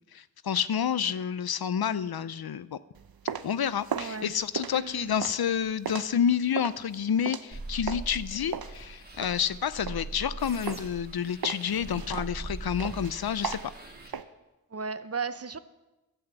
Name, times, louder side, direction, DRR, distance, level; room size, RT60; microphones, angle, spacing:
voice 1, 0.1-2.8 3.4-13.7, left 8 dB, 85° left, 16 dB, 0.5 m, -29 dB
sound 1, 2.9-8.2 8.5-10.3 10.7-11.1 11.4-14.2, right 7 dB, 75° right, 0.7 m, -37 dB
voice 2, 3.9-4.3 4.7-5.2 14.7-15.6, right 5 dB, 40° right, 13 dB, 0.7 m, -35 dB
sound 2, 7.5-14.1, right 2 dB, 25° right, 2.3 m, -41 dB
12.0 x 7.9 x 8.0 m, 1.0 s
wide cardioid pair, 45°, 36 cm